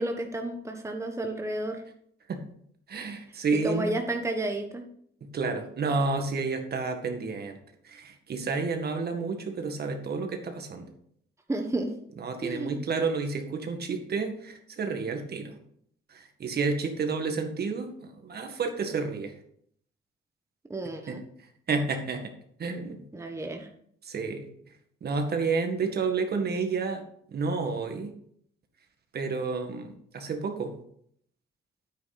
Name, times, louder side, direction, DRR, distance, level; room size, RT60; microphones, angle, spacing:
voice 1, 0.0-1.8 3.6-4.8 11.5-11.9 12.4-12.8 20.7-21.2 23.1-23.7, right 1 dB, 15° right, 3 dB, 1.3 m, -31 dB
voice 2, 2.9-3.9 5.2-7.6 7.8-10.9 12.2-15.6 16.1-19.4 21.1-22.3 22.6-23.0 24.0-27.0 27.3-28.1 29.1-30.7, right 4 dB, 55° right, 5 dB, 1.9 m, -30 dB
9.6 x 8.5 x 4.2 m, 0.66 s
cardioid pair, 90°, 20 cm